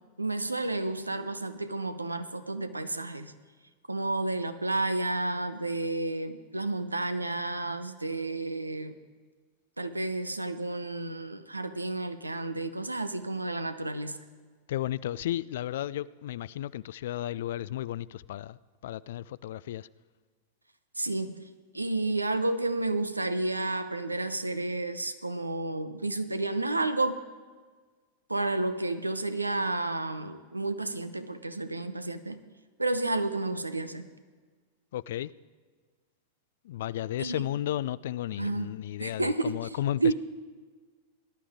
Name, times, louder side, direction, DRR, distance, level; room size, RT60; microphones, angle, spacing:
voice 1, 0.2-3.3 3.9-9.0 9.8-14.2 21.0-21.3 21.7-27.2 28.3-32.4 32.8-34.1 37.2-37.4 38.4-38.7 39.0-39.7 40.0-40.1, right 2 dB, 90° right, 11 dB, 0.8 m, -31 dB
voice 2, 14.7-18.6 18.8-19.9 34.9-35.3 36.7-40.1, left 12 dB, 60° left, 20 dB, 0.3 m, -33 dB
19.0 x 11.5 x 3.6 m, 1.5 s
figure-of-eight pair, 95°, 0 cm